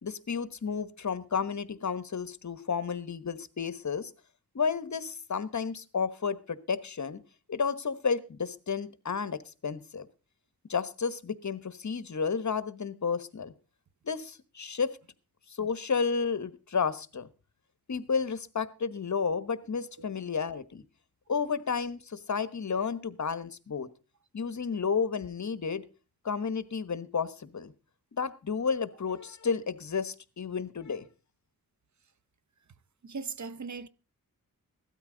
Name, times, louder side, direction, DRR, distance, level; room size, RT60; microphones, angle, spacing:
voice 1, 0.0-4.1 4.5-7.2 7.5-10.1 10.7-13.5 14.0-15.0 15.6-17.3 17.9-20.8 21.3-23.9 24.3-25.8 26.2-27.7 28.2-31.1, left 5 dB, 55° left, 1.1 m, -32 dB
voice 2, 33.0-33.9, right 5 dB, 55° right, 0.8 m, -38 dB
16.5 x 13.0 x 3.9 m
wide cardioid pair, 75°, 35 cm